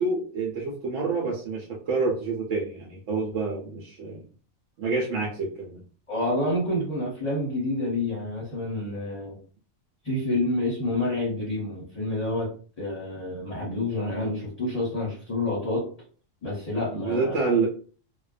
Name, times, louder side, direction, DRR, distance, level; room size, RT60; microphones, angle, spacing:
voice 1, 0.0-4.2 4.8-5.8 16.9-17.7, right 4 dB, 80° right, -2 dB, 1.0 m, -28 dB
voice 2, 6.1-9.4 10.0-12.5 12.8-15.9 16.4-17.5, left 1 dB, 35° left, -4 dB, 0.7 m, -28 dB
2.4 x 2.1 x 2.4 m, 0.40 s
omnidirectional pair, 1.3 m